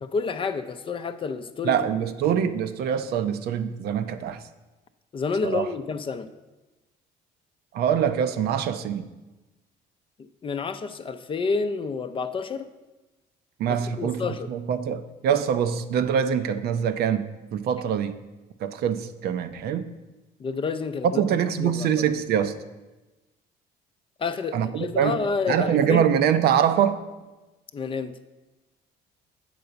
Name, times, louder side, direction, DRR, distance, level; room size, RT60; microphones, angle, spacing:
voice 1, 0.0-1.8 5.1-6.3 10.4-12.7 13.7-14.5 20.4-21.2 21.6-21.9 24.2-26.0 27.7-28.1, left 4 dB, 30° left, 9 dB, 0.5 m, -29 dB
voice 2, 1.6-4.4 5.4-5.7 7.7-9.1 13.6-18.2 18.6-19.9 21.0-22.5 24.5-27.0, right 8 dB, 70° right, 10 dB, 0.6 m, -24 dB
8.0 x 3.9 x 6.8 m, 1.1 s
cardioid pair, 110°, 17 cm